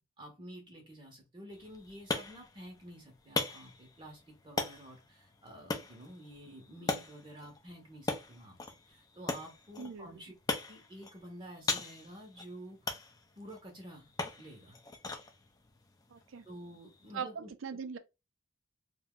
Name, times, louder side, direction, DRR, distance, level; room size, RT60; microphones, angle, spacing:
voice 1, 0.0-10.3 10.7-13.0 13.4-14.1 14.4-14.8 16.4-17.5, equal, 25° right, 0.7 m, -50 dB
sound 1, 1.5-17.1, left 3 dB, 20° left, 0.4 m, -41 dB
voice 2, 9.8-10.1 16.1-16.4 17.1-18.0, right 6 dB, 80° right, 0.4 m, -40 dB
2.6 x 2.1 x 3.6 m
head